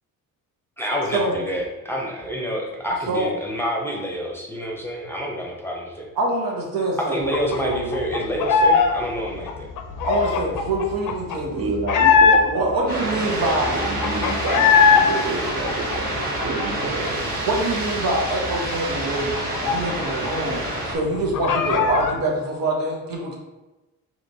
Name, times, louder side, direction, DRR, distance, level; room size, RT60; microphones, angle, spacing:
voice 1, 0.8-6.1 7.1-9.7, equal, 5° left, -2 dB, 0.7 m, -28 dB
voice 2, 6.2-7.9 10.0-11.7 12.4-13.8 16.4-16.9 17.4-19.3 19.6-23.4, right 2 dB, 75° right, -1 dB, 1.0 m, -25 dB
sound 1, 7.3-8.9 9.2-12.7 13.1-13.2 13.4-15.0 15.4-17.1 17.4-17.5 17.8-20.3 20.6-20.7 21.0-22.2, left 5 dB, 65° left, 0.6 m, -20 dB
voice 3, 11.6-16.1 16.4-17.2, right 3 dB, 40° right, 2 dB, 0.7 m, -29 dB
sound 2, 12.9-20.9, right 1 dB, 25° right, 1.3 m, -28 dB
4.9 x 2.9 x 2.7 m, 1.1 s
cardioid pair, 125°, 35 cm